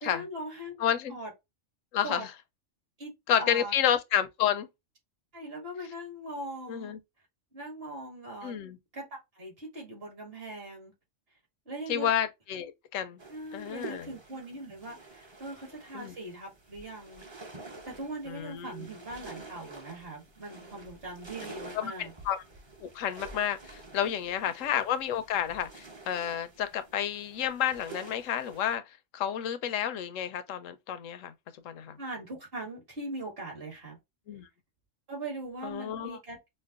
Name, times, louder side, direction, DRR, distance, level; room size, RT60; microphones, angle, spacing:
voice 1, 0.0-1.3 2.0-2.2 3.0-3.1 3.4-3.7 5.3-6.9 7.5-8.5 8.9-10.9 11.7-12.1 13.3-17.2 17.8-22.1 24.0-24.1 32.0-34.0 35.1-36.4, right 1 dB, 50° right, 1.9 m, -41 dB
voice 2, 0.8-1.2 1.9-2.3 3.3-4.7 6.7-7.0 8.4-8.8 11.9-13.2 13.5-14.1 15.9-16.1 18.3-18.9 21.7-22.4 22.8-31.3 31.6-32.0 34.3-34.5 35.6-36.2, left 9 dB, 85° left, 1.0 m, -30 dB
sound 1, 13.2-28.8, right 3 dB, 25° right, 0.7 m, -49 dB
5.1 x 2.1 x 2.3 m
omnidirectional pair, 1.3 m